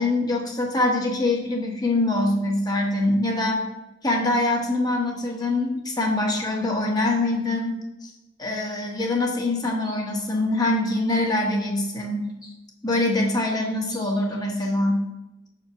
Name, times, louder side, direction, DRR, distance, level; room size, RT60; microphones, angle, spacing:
voice 1, 0.0-3.6 4.0-8.1 8.4-12.5 12.8-15.0, left 2 dB, 20° left, -1 dB, 1.0 m, -24 dB
6.3 x 4.6 x 5.8 m, 0.98 s
head